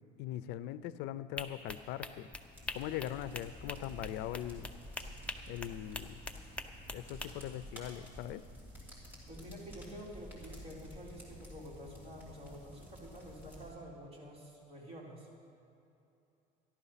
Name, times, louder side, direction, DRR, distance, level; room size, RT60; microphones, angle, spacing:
voice 1, 0.2-2.3 2.7-4.7 5.5-6.2 6.9-8.4, left 12 dB, 75° left, 15 dB, 0.5 m, -41 dB
sound 1, 1.4-7.3, left 2 dB, 5° left, 0.6 m, -44 dB
sound 2, 2.5-13.7, equal, 10° right, 2.8 m, -51 dB
voice 2, 9.3-15.4, equal, 35° right, -5 dB, 3.8 m, -49 dB
13.5 x 11.5 x 5.7 m, 2.8 s
cardioid pair, 150°, 18 cm